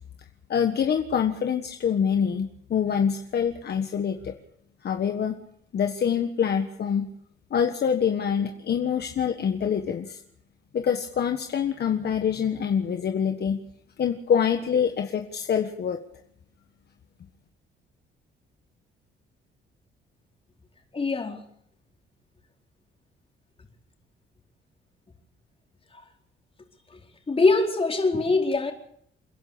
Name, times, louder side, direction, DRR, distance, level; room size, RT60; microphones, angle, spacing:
voice 1, 0.5-4.3 4.8-5.3 5.7-7.1 7.5-10.2 10.7-13.6 14.0-16.0, left 7 dB, 55° left, 1.5 m, -25 dB
voice 2, 20.9-21.4 27.3-28.7, left 3 dB, 30° left, 4.4 m, -22 dB
29.0 x 11.0 x 8.7 m
cardioid pair, 90°, 20 cm